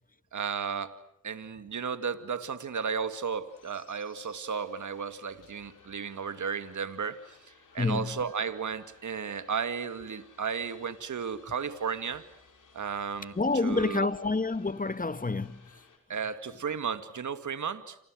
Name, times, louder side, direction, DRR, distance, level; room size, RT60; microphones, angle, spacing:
voice 1, 0.3-0.9 1.2-7.2 7.7-12.2 12.7-14.1 16.1-18.0, right 6 dB, 65° right, 2.1 m, -34 dB
sound 1, 3.5-16.0, left 5 dB, 75° left, 5.7 m, -59 dB
voice 2, 7.8-8.2 13.4-15.6, left 3 dB, 25° left, 1.3 m, -28 dB
30.0 x 26.5 x 6.4 m
supercardioid pair, 40°, 32 cm